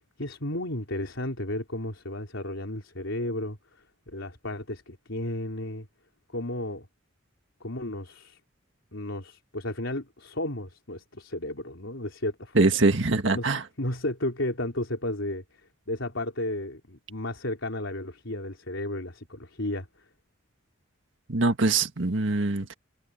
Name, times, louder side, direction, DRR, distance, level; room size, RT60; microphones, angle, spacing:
voice 1, 0.2-5.9 6.3-6.9 7.6-8.4 8.9-12.6 13.3-13.5 13.8-20.1, left 1 dB, 80° left, 3.9 m, -33 dB
voice 2, 12.6-13.6 21.3-22.7, right 3 dB, 70° right, 1.7 m, -23 dB
head